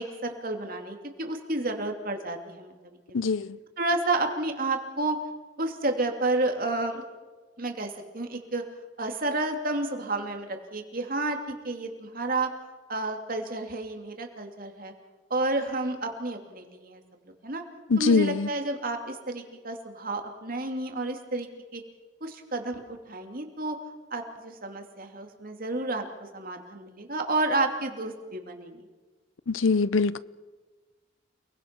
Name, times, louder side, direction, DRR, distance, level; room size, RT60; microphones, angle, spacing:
voice 1, 0.0-3.2 3.8-5.2 5.6-7.0 7.6-8.6 9.0-11.4 11.6-12.5 12.9-14.9 15.3-17.0 17.4-17.6 18.0-21.8 22.2-22.8 23.1-23.8 24.1-26.1 26.3-28.8, right 2 dB, 45° right, 2.9 m, -30 dB
voice 2, 3.1-3.6 17.9-18.5 29.5-30.2, left 4 dB, 80° left, 0.7 m, -23 dB
29.5 x 20.0 x 6.1 m
head